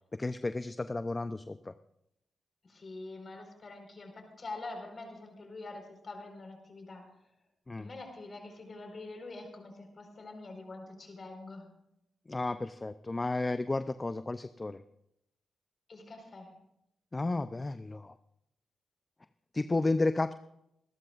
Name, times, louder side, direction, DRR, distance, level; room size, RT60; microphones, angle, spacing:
voice 1, 0.2-1.7 7.7-7.9 12.3-14.8 17.1-18.1 19.5-20.3, left 2 dB, 30° left, 12 dB, 0.6 m, -32 dB
voice 2, 2.7-7.1 7.7-11.7 15.9-16.5, left 2 dB, 45° left, 4 dB, 4.8 m, -45 dB
26.5 x 13.0 x 2.5 m, 0.79 s
supercardioid pair, 50°, 0 cm